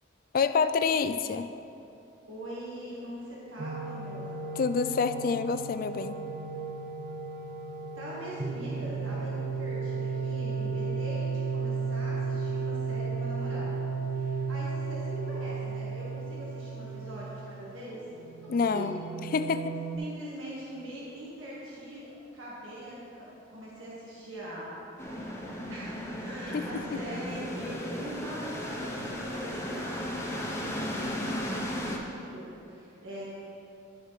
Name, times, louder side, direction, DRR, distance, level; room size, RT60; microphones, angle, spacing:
voice 1, 0.3-1.5 4.6-6.2 18.5-19.0 19.3-19.8 26.5-27.0, left 5 dB, 45° left, 11 dB, 0.3 m, -27 dB
voice 2, 2.3-4.4 7.9-13.8 14.1-18.0 18.4-18.9 19.2-19.3 20.0-33.2, right 1 dB, 85° right, -7 dB, 1.5 m, -42 dB
sound 1, 3.6-20.0, right 4 dB, 50° right, 0.5 m, -34 dB
sound 2, 25.0-32.0, left 1 dB, 15° left, 0.7 m, -35 dB
11.5 x 6.6 x 3.2 m, 2.8 s
head